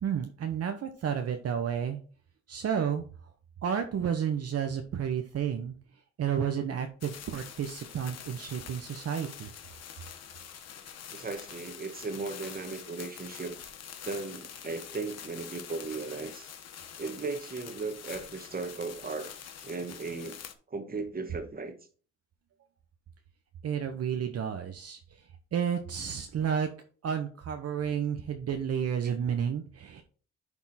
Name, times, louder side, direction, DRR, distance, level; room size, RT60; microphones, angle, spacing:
voice 1, 0.0-2.0 2.5-3.0 3.6-5.8 6.2-9.5 23.6-26.7 27.0-30.0, right 8 dB, 55° right, 0.9 m, -31 dB
sound 1, 7.0-20.5, left 8 dB, 55° left, 1.1 m, -46 dB
voice 2, 11.1-13.6 14.0-16.5 17.0-19.3 19.6-20.4 20.7-21.8, right 4 dB, 30° right, 1.4 m, -36 dB
11.0 x 3.6 x 4.2 m
cardioid pair, 90°, 30 cm